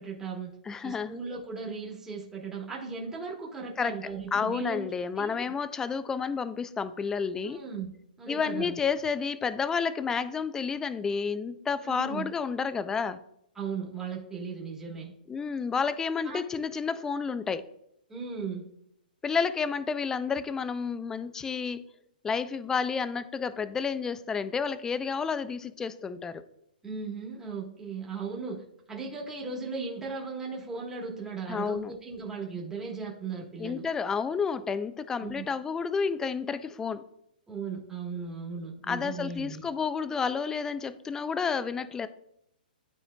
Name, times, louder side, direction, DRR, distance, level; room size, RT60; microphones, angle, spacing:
voice 1, 0.0-0.5 0.8-4.9 5.2-5.5 7.4-8.8 11.8-12.3 13.5-15.1 16.2-16.6 18.1-18.6 26.8-33.8 35.2-35.5 37.5-39.7, right 5 dB, 10° right, -3 dB, 1.3 m, -37 dB
voice 2, 0.7-1.2 3.8-3.9 4.3-7.6 8.3-13.2 15.3-17.6 19.2-21.8 22.2-26.4 31.5-31.9 33.6-37.0 38.9-42.1, left 5 dB, 10° left, 13 dB, 0.3 m, -30 dB
11.5 x 4.3 x 2.2 m, 0.76 s
hypercardioid pair, 140°, 5 cm